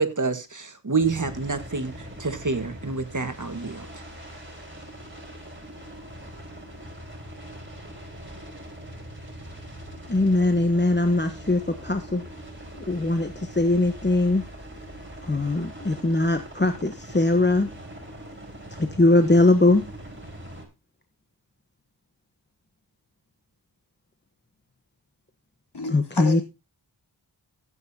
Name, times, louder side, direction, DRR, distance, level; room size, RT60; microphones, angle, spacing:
voice 1, 0.0-3.9, right 4 dB, 45° right, 1.7 m, -27 dB
sound 1, 1.0-20.7, equal, 25° right, 4.5 m, -42 dB
voice 2, 10.1-12.2 12.7-14.4 15.2-17.7 18.8-19.8 25.9-26.4, left 2 dB, 25° left, 1.1 m, -21 dB
voice 3, 25.7-26.4, left 2 dB, 60° left, 3.2 m, -31 dB
16.0 x 8.5 x 2.8 m
cardioid pair, 40°, 44 cm